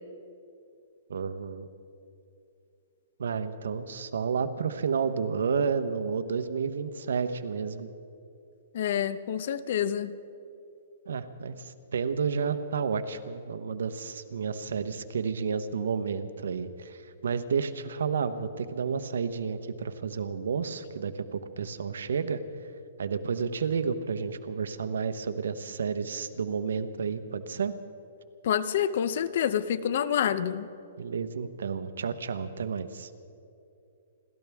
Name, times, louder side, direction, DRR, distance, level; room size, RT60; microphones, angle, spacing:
voice 1, 1.1-1.7 3.2-7.9 11.1-22.4 23.0-27.7 31.0-33.1, right 6 dB, 85° right, 11 dB, 1.0 m, -31 dB
voice 2, 8.7-10.1 28.4-30.7, left 9 dB, 55° left, 15 dB, 0.7 m, -27 dB
29.5 x 13.5 x 3.6 m, 2.6 s
hypercardioid pair, 160°, 0 cm